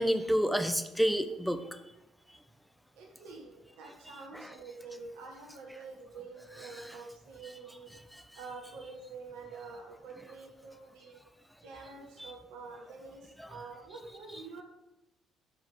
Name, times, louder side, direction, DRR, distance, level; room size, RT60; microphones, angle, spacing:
voice 1, 0.0-1.6 4.3-4.5 12.2-12.3, equal, ahead, 9 dB, 1.0 m, -29 dB
voice 2, 2.9-7.9 8.3-11.2 11.6-13.2 13.5-14.6, right 4 dB, 70° right, 1 dB, 1.5 m, -47 dB
12.0 x 5.3 x 5.4 m, 0.93 s
figure-of-eight pair, 50°, 0 cm